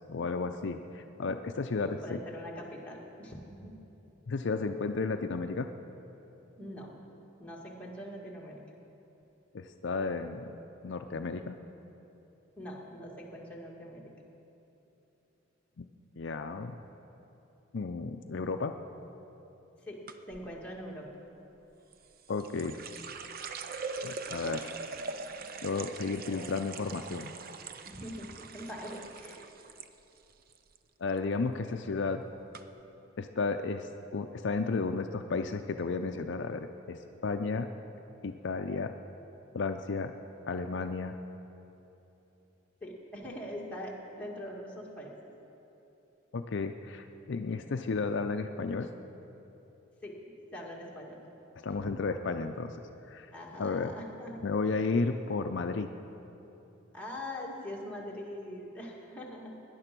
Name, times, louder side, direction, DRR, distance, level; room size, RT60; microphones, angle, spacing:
voice 1, 0.1-2.2 4.3-5.7 9.5-10.5 10.8-11.6 15.8-15.9 16.2-16.8 17.7-18.7 22.3-22.8 24.0-24.7 25.6-27.3 31.0-32.2 33.2-37.7 38.2-39.0 39.5-40.1 40.5-41.2 46.3-48.9 51.6-52.8 53.1-53.3 53.6-53.9 54.4-55.9, left 4 dB, 60° left, 7 dB, 0.5 m, -33 dB
voice 2, 1.6-3.7 6.6-6.9 7.4-8.6 12.6-14.1 19.8-21.2 27.8-29.5 42.8-45.3 50.0-50.2 50.5-51.2 51.7-52.0 53.3-54.4 56.9-59.5, equal, 5° left, -3 dB, 2.0 m, -43 dB
sound 1, 20.1-20.5 21.9-29.9 30.2-30.8 31.1-31.4 32.1-32.2 32.5-32.6, right 4 dB, 45° right, 0.6 m, -42 dB
18.0 x 10.5 x 6.0 m, 3.0 s
head